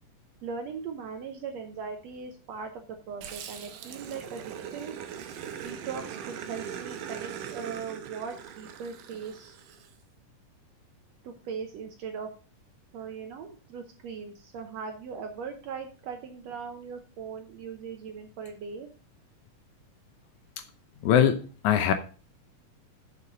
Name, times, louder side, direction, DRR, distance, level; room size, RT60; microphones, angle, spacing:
voice 1, 0.4-4.9 5.6-9.6 11.2-12.3 12.9-18.9, right 6 dB, 70° right, 1.7 m, -39 dB
Growling, 3.2-9.9, right 8 dB, 85° right, 2.6 m, -40 dB
voice 2, 21.0-21.9, left 9 dB, 75° left, 2.1 m, -22 dB
7.1 x 6.9 x 5.1 m
omnidirectional pair, 3.8 m